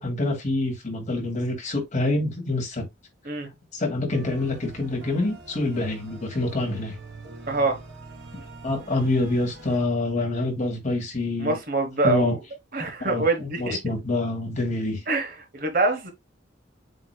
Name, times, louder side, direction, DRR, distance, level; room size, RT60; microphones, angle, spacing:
voice 1, 0.0-2.8 3.7-7.0 8.6-11.6 12.0-12.3 13.0-15.0, left 2 dB, 40° left, 2.2 m, -26 dB
sound 1, 4.1-9.8, right 3 dB, 80° right, 2.3 m, -43 dB
voice 2, 7.5-7.8 11.4-12.4 12.7-13.8 15.1-16.1, right 3 dB, 50° right, 1.2 m, -25 dB
7.7 x 3.1 x 2.3 m
head